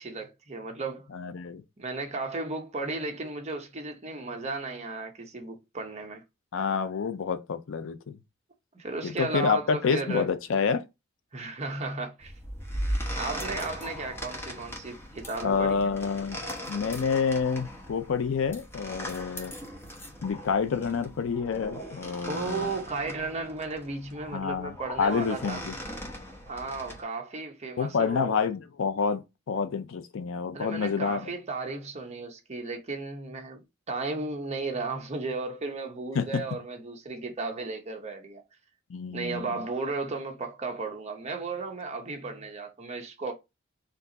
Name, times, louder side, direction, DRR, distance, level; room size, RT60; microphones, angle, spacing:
voice 1, 0.0-1.1 1.8-6.2 8.7-10.3 11.3-12.3 13.2-16.0 22.3-25.6 26.5-28.5 30.5-38.4 39.1-43.3, right 3 dB, 30° right, 0.9 m, -35 dB
voice 2, 1.1-1.6 6.5-8.2 9.0-10.8 15.4-16.4 16.7-19.5 20.2-22.7 24.3-24.7 25.0-25.7 27.8-31.3 36.2-36.4 38.9-39.6, left 6 dB, 65° left, 0.5 m, -28 dB
sound 1, 12.2-27.0, equal, 10° left, 0.9 m, -39 dB
4.4 x 2.5 x 3.9 m
head